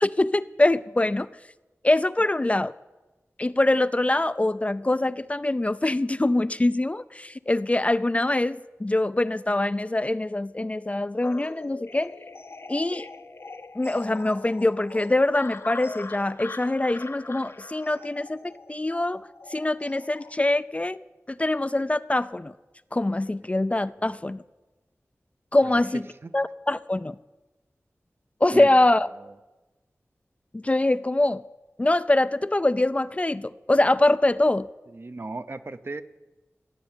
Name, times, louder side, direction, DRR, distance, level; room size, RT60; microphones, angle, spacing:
voice 1, 0.0-1.3 1.8-2.7 3.4-12.1 12.7-13.1 13.8-21.0 21.3-22.5 22.9-24.4 25.5-26.0 26.3-27.2 28.4-29.1 30.5-31.4 31.8-34.7, left 2 dB, 25° left, 14 dB, 0.4 m, -24 dB
sound 1, 11.2-20.3, left 3 dB, 55° left, 0.7 m, -42 dB
voice 2, 29.0-29.3 34.9-36.0, right 3 dB, 50° right, 11 dB, 0.7 m, -36 dB
15.5 x 7.6 x 8.8 m, 1.1 s
wide cardioid pair, 75°, 5 cm